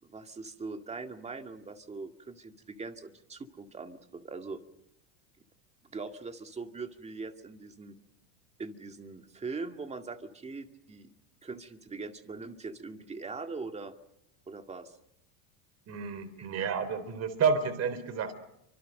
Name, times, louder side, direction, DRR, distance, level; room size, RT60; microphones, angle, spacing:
voice 1, 0.0-4.6 5.9-8.0 8.6-11.1 11.4-13.9 14.5-15.0 16.4-16.5, right 4 dB, 15° right, 6 dB, 2.1 m, -41 dB
voice 2, 15.9-18.3, right 5 dB, 35° right, 13 dB, 3.7 m, -30 dB
30.0 x 25.0 x 6.5 m, 0.81 s
supercardioid pair, 135°, 44 cm